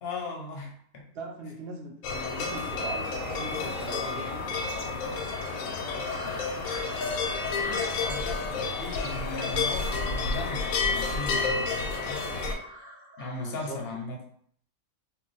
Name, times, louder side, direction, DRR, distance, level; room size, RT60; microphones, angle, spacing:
voice 1, 0.0-1.1 5.0-5.1 7.5-12.3 13.2-14.2, left 3 dB, 60° left, 1 dB, 0.7 m, -37 dB
voice 2, 1.1-4.5 13.4-14.2, right 3 dB, 60° right, 1 dB, 0.6 m, -40 dB
sound 1, 2.0-12.5, left 4 dB, 85° left, 1.0 m, -30 dB
sound 2, 2.5-14.0, equal, 20° right, 0.8 m, -47 dB
2.3 x 2.2 x 3.9 m, 0.62 s
omnidirectional pair, 1.5 m